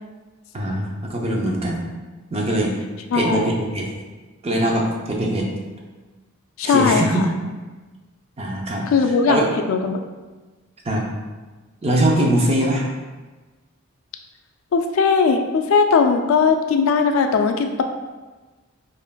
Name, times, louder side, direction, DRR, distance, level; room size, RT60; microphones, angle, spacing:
voice 1, 0.5-1.8 2.3-2.7 3.1-3.9 4.4-5.5 6.6-7.1 8.4-8.9 9.3-9.5 10.8-11.0 11.8-12.9, right 1 dB, 30° right, -1 dB, 0.5 m, -21 dB
voice 2, 3.1-3.6 6.6-7.1 8.9-9.4 9.7-10.0 14.7-17.8, left 5 dB, 70° left, 5 dB, 0.3 m, -18 dB
5.3 x 2.5 x 2.2 m, 1.3 s
head